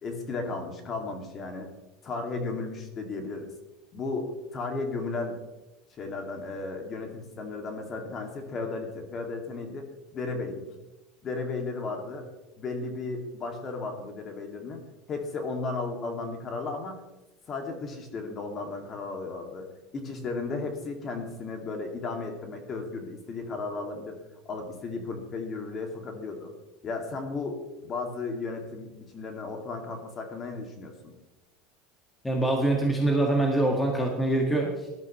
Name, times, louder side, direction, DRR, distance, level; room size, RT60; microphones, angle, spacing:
voice 1, 0.0-1.7 2.0-3.5 3.9-5.4 6.0-9.8 10.1-10.6 11.2-12.3 12.6-14.8 15.1-17.0 17.5-24.2 24.5-26.5 26.8-31.1, left 3 dB, 30° left, 3 dB, 2.4 m, -34 dB
voice 2, 32.2-34.7, right 2 dB, 10° left, 0 dB, 1.8 m, -24 dB
19.0 x 12.0 x 3.2 m, 1.0 s
supercardioid pair, 140°, 0 cm